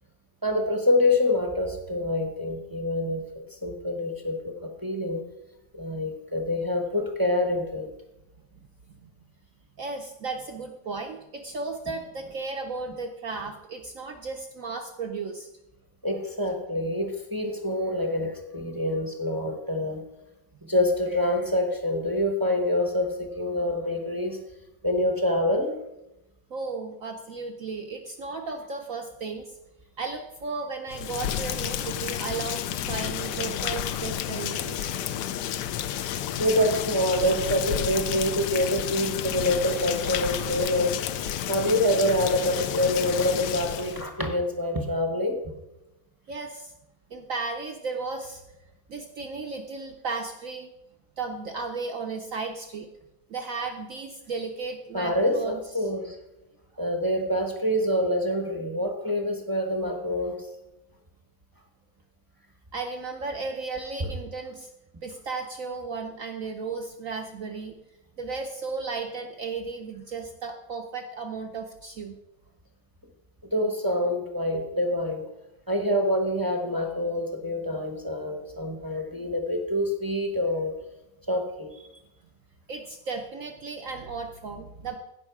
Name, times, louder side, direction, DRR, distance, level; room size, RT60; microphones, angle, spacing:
voice 1, 0.4-3.2 3.5-5.2 5.7-7.9 16.0-20.0 20.6-24.4 24.8-25.8 36.4-41.0 41.5-45.4 54.9-56.2 56.8-60.5 73.4-75.3 75.7-80.7 81.3-81.7, left 1 dB, 20° right, 3 dB, 0.5 m, -26 dB
voice 2, 9.8-15.5 26.5-29.6 30.0-35.0 46.3-46.7 47.1-48.4 48.9-50.7 51.2-52.9 53.3-55.6 62.7-64.7 65.0-67.8 68.2-72.2 81.8-82.0 82.7-85.0, right 4 dB, 70° right, 4 dB, 0.8 m, -35 dB
Rain, 30.9-44.1, left 10 dB, 70° left, 1.0 m, -31 dB
16.0 x 5.5 x 4.7 m, 0.93 s
omnidirectional pair, 2.2 m